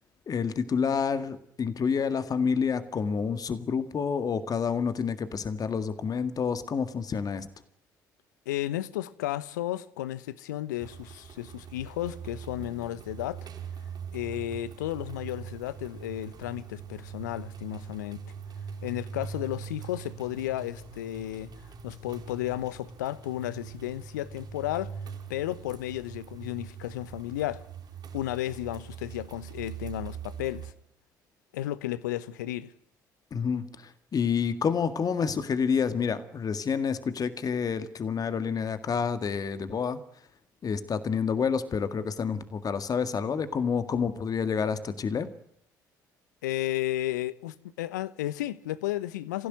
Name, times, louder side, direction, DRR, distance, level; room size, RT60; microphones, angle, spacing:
voice 1, 0.3-7.5 33.3-40.0 40.6-45.3, left 6 dB, 40° left, 1.9 m, -28 dB
voice 2, 8.5-13.5 14.1-18.2 18.8-21.5 21.8-24.9 25.3-27.6 28.1-30.7 31.5-32.7 46.4-49.5, left 14 dB, 75° left, 1.0 m, -33 dB
sound 1, 10.8-30.7, right 7 dB, 45° right, 5.0 m, -42 dB
26.0 x 16.0 x 9.3 m
figure-of-eight pair, 50°, 10 cm